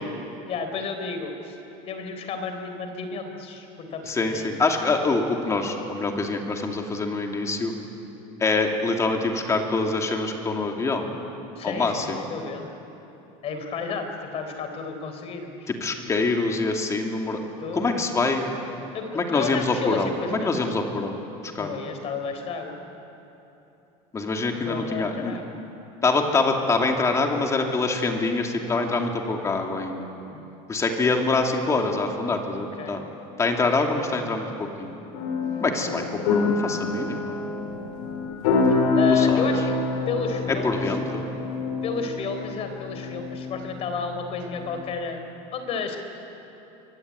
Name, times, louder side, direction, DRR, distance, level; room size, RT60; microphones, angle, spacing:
voice 1, 0.5-1.6 1.9-4.7 11.6-12.7 13.4-14.1 14.3-15.7 17.6-18.0 18.9-20.5 21.6-22.8 24.6-25.6 30.3-30.5 32.6-33.0 39.0-39.7 40.1-40.9 41.8-45.2 45.5-46.0, left 5 dB, 40° left, 6 dB, 3.9 m, -32 dB
voice 2, 4.1-7.7 8.4-11.1 11.6-12.2 15.7-17.4 17.7-18.4 19.1-21.8 24.1-25.4 26.0-30.1 30.7-33.0 33.4-34.9 35.6-37.3 39.1-39.5 40.5-41.2, left 3 dB, 20° left, 2 dB, 2.8 m, -25 dB
sound 1, 35.1-44.8, left 3 dB, 75° left, 5.9 m, -26 dB
25.0 x 23.0 x 9.5 m, 2.9 s
supercardioid pair, 145°, 16 cm